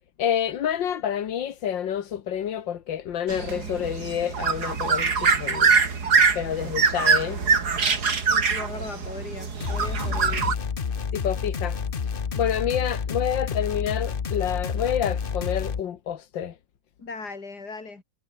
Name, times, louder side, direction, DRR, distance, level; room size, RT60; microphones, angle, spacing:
voice 1, 0.2-5.7 6.4-7.4 11.1-11.8 12.4-16.5, left 9 dB, 90° left, 2.0 m, -28 dB
sound 1, 3.3-10.5, right 5 dB, 60° right, 2.9 m, -23 dB
voice 2, 8.2-10.6 17.0-18.0, left 4 dB, 60° left, 4.4 m, -38 dB
sound 2, 9.6-15.8, left 6 dB, 35° left, 1.0 m, -29 dB
omnidirectional pair, 1.9 m